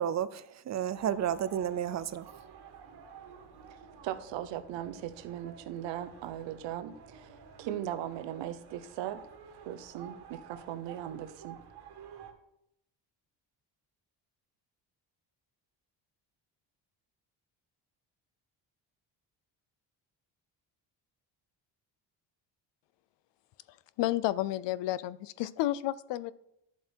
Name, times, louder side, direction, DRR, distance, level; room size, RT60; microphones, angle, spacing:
voice 1, 0.0-2.3, right 9 dB, 40° right, 0.6 m, -32 dB
sound 1, 0.9-12.3, right 7 dB, 65° right, 1.8 m, -51 dB
voice 2, 4.0-9.2 9.7-11.6, right 11 dB, 90° right, 0.9 m, -38 dB
voice 3, 24.0-26.3, left 15 dB, 75° left, 0.6 m, -31 dB
12.0 x 7.3 x 4.5 m
cardioid pair, 120°, 43 cm